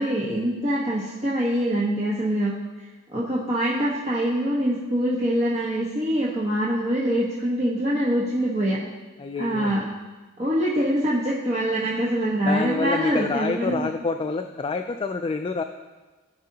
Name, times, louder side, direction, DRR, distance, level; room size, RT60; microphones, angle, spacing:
voice 1, 0.0-2.5 3.1-8.8 9.4-9.8 10.4-13.9, right 1 dB, 30° right, -7 dB, 1.2 m, -24 dB
voice 2, 9.2-9.7 12.4-15.6, left 4 dB, 25° left, 6 dB, 0.3 m, -27 dB
15.5 x 5.3 x 2.8 m, 1.2 s
head